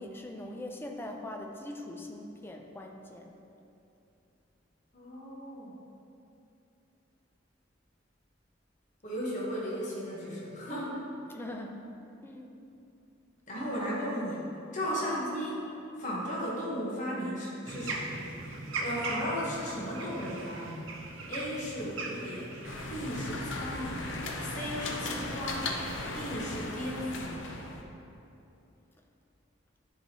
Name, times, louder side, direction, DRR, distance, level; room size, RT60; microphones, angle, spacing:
voice 1, 0.0-3.3 11.3-11.9 12.2-12.6 15.0-15.3, left 1 dB, 10° left, 2 dB, 0.4 m, -42 dB
voice 2, 4.9-5.8 9.0-11.0 13.5-14.4 14.7-15.7 16.0-18.2 18.7-20.8 21.3-22.6 22.9-24.1 24.4-25.7 26.1-27.4, equal, 40° left, -6 dB, 1.2 m, -35 dB
sound 1, 17.7-23.3, right 3 dB, 75° right, 0.8 m, -39 dB
sound 2, 22.6-27.8, left 2 dB, 65° left, 0.6 m, -37 dB
10.5 x 4.8 x 2.9 m, 2.8 s
head